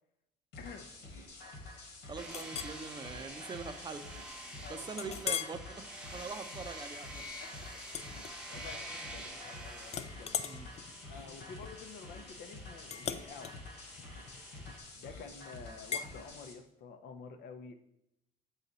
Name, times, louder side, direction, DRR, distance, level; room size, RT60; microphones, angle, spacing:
sound 1, 0.5-16.5, left 2 dB, 90° left, 1.6 m, -49 dB
voice 1, 0.6-0.9 4.6-5.2 7.4-10.5 11.1-13.5 15.0-17.7, left 5 dB, 75° left, 7 dB, 0.8 m, -50 dB
voice 2, 2.1-4.1 4.7-7.2 10.4-10.7, right 4 dB, 25° right, 9 dB, 0.5 m, -43 dB
sound 2, 2.2-14.8, right 1 dB, 5° right, 0.9 m, -48 dB
Chink clink, 2.3-2.8 3.3-3.5 3.9-4.0 5.0-5.6 6.1-6.4 7.9-8.8 9.1-9.5 9.9-15.0 15.9-16.1, left 8 dB, 40° left, 0.4 m, -40 dB
7.1 x 4.0 x 4.0 m, 0.81 s
cardioid pair, 110°, 17 cm